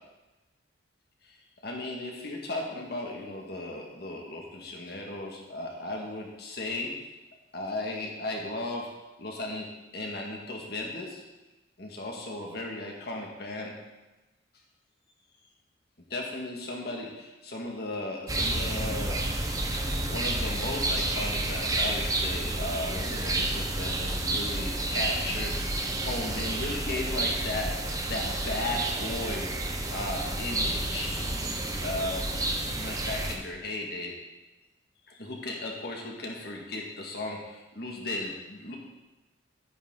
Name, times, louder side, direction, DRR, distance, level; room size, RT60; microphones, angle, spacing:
voice 1, 1.6-6.9 7.5-8.9 9.2-9.7 9.9-11.2 11.8-13.7 16.1-19.2 20.1-25.6 26.0-29.5 29.9-31.2 31.8-32.2 32.5-34.1 35.1-38.8, left 2 dB, 55° left, -1 dB, 1.9 m, -36 dB
sound 1, 18.3-33.4, right 2 dB, 20° right, 0.8 m, -30 dB
10.5 x 9.9 x 3.9 m, 1.1 s
head